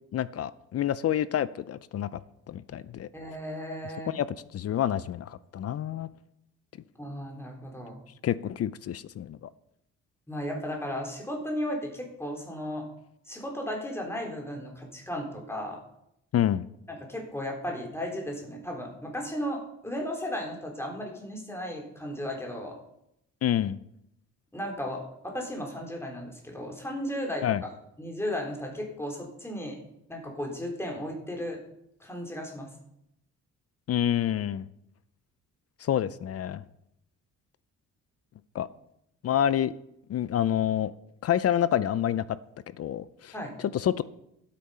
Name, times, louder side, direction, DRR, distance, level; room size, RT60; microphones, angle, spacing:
voice 1, 0.1-2.2 2.5-3.1 4.1-4.3 4.5-6.1 8.2-9.5 16.3-16.7 23.4-23.8 27.4-27.6 33.9-34.7 35.8-36.6 38.5-38.7 39.2-39.7 40.1-40.9 41.2-42.4 42.8-44.0, left 10 dB, 50° left, 17 dB, 0.6 m, -28 dB
voice 2, 3.1-4.2 7.0-8.0 10.3-12.9 13.3-15.8 16.9-22.8 24.5-27.5 28.0-29.8 30.1-31.6 32.0-32.7 43.3-43.5, equal, 10° left, 1 dB, 3.7 m, -35 dB
12.5 x 8.6 x 5.5 m, 0.81 s
cardioid pair, 90°, 30 cm